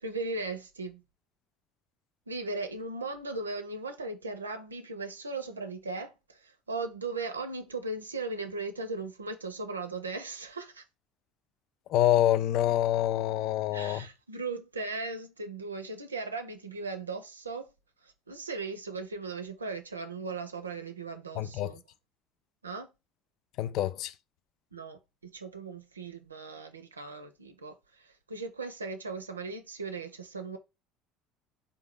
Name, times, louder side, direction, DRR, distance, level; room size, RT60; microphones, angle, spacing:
voice 1, 0.0-1.0 2.3-10.8 13.7-17.7 18.0-21.8 22.6-22.9 24.7-30.6, right 3 dB, 85° right, 0.4 m, -38 dB
voice 2, 11.9-14.0 21.4-21.7 23.6-24.1, left 12 dB, 55° left, 0.3 m, -26 dB
3.7 x 2.6 x 3.5 m
figure-of-eight pair, 60°, 0 cm